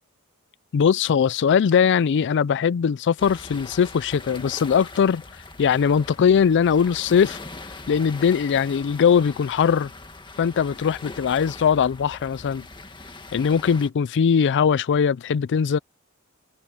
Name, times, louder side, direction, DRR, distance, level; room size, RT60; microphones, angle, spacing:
voice 1, 0.7-5.2 5.6-7.4 7.9-9.9 10.4-12.7 13.3-15.8, left 7 dB, 55° left, 0.4 m, -20 dB
sound 1, 3.2-13.9, left 3 dB, 20° left, 1.9 m, -41 dB
head